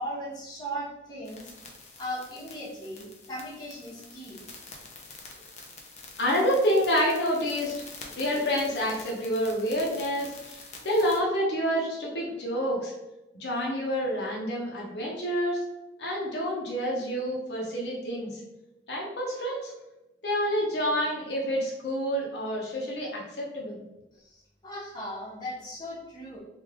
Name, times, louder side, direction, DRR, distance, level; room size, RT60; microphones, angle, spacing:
voice 1, 0.0-1.5 2.0-4.4 24.1-26.4, equal, 25° left, -7 dB, 1.1 m, -38 dB
sound 1, 1.3-11.2, left 3 dB, 40° left, 0.6 m, -47 dB
voice 2, 6.2-7.7 8.1-12.9 13.4-15.6 16.0-18.4 18.9-19.7 20.2-23.8, equal, 70° left, -3 dB, 0.8 m, -28 dB
3.2 x 2.5 x 3.6 m, 0.97 s
head